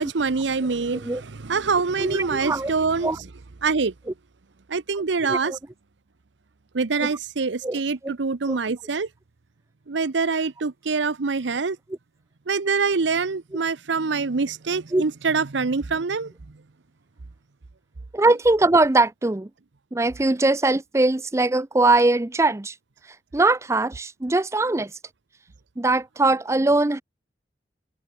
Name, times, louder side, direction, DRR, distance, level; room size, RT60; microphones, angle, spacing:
voice 1, 0.0-3.1 3.6-3.9 4.7-5.5 6.7-9.1 9.9-11.8 12.5-16.3, right 4 dB, 85° right, 0.8 m, -25 dB
voice 2, 2.0-2.7 3.0-3.2 5.2-5.6 7.0-7.1 7.6-8.1 8.5-8.6 13.5-13.6 14.9-15.0 18.1-19.5 19.9-22.7 23.3-24.9 25.8-27.0, right 2 dB, 15° right, 0.5 m, -21 dB
head